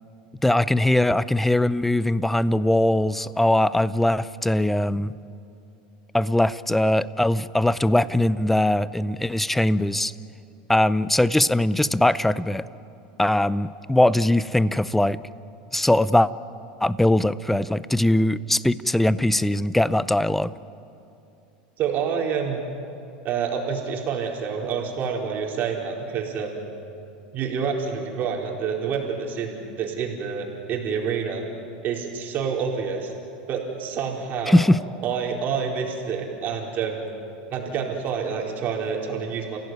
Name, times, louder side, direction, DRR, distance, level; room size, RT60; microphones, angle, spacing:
voice 1, 0.4-5.1 6.1-10.1 10.7-12.6 13.2-15.2 15.7-16.3 16.8-20.5 34.5-34.8, left 1 dB, 5° left, 17 dB, 0.6 m, -21 dB
voice 2, 21.8-22.6 23.2-26.7 27.3-31.4 31.8-33.1 33.5-34.6 35.0-37.1 37.5-39.6, right 6 dB, 40° right, 0 dB, 4.4 m, -28 dB
30.0 x 16.5 x 9.4 m, 2.7 s
supercardioid pair, 120°, 5 cm